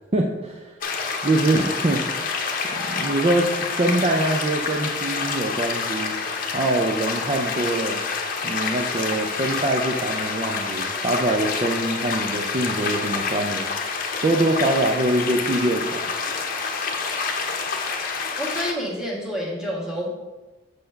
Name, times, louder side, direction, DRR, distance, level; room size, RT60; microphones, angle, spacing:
voice 1, 0.1-0.7 1.2-2.0 2.7-3.5 3.8-6.2 6.5-8.0 8.4-13.7 14.2-16.1, right 1 dB, 35° right, 1 dB, 0.5 m, -24 dB
sound 1, 0.8-18.7, left 4 dB, 50° left, 0.8 m, -27 dB
voice 2, 18.4-20.1, equal, 5° right, -4 dB, 1.6 m, -28 dB
6.5 x 4.2 x 5.7 m, 1.2 s
head